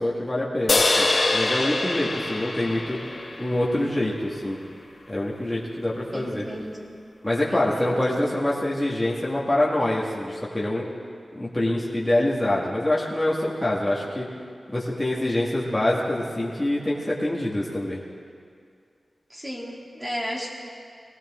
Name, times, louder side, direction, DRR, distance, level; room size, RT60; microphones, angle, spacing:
voice 1, 0.0-3.0 3.4-4.6 5.1-6.5 7.2-10.8 11.3-14.3 14.7-18.1, left 1 dB, 15° left, -6 dB, 1.9 m, -25 dB
sound 1, 0.7-4.2, left 2 dB, 60° left, 1.7 m, -24 dB
voice 2, 6.1-6.9 7.5-8.0 19.3-20.5, equal, 20° right, -4 dB, 2.9 m, -34 dB
20.0 x 16.5 x 3.7 m, 2.3 s
wide cardioid pair, 95°, 0 cm